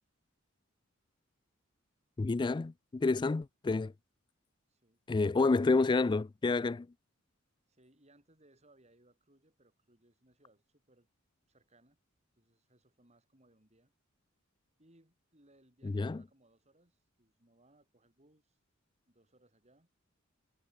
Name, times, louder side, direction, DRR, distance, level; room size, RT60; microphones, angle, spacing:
voice 1, 2.2-3.9 5.1-6.9 15.8-16.2, left 3 dB, 20° left, 0.3 m, -29 dB
voice 2, 4.7-5.6 7.7-11.1 11.5-12.0 12.4-13.9 14.8-18.6 19.1-19.9, right 1 dB, 35° right, 7.2 m, -67 dB
head